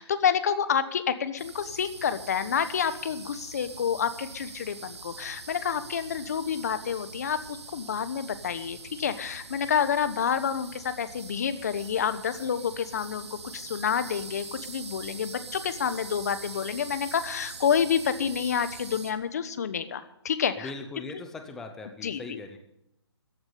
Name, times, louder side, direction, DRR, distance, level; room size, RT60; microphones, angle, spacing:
voice 1, 0.0-20.7 22.0-22.4, left 7 dB, 35° left, 12 dB, 1.1 m, -29 dB
sound 1, 1.4-19.1, right 4 dB, 75° right, 2.5 m, -43 dB
voice 2, 20.6-22.6, left 3 dB, 5° left, 5 dB, 0.7 m, -40 dB
15.0 x 9.7 x 8.6 m, 0.80 s
hypercardioid pair, 170°, 14 cm